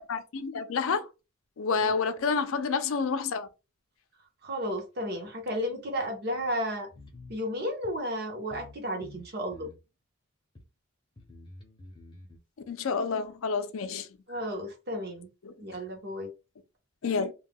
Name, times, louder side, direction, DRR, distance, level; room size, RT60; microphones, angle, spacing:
voice 1, 0.1-1.1 1.6-3.5 12.7-14.1 15.4-15.5 17.0-17.3, left 5 dB, 70° left, 0.4 m, -29 dB
voice 2, 4.4-6.9 7.3-9.7 14.3-15.3 15.6-16.3, equal, 50° right, 0.7 m, -33 dB
sound 1, 6.9-7.4 7.8-7.9 8.5-8.8 9.0-9.8 10.6-10.7 11.2-12.4, left 2 dB, 20° left, 0.6 m, -49 dB
2.3 x 2.2 x 3.5 m
head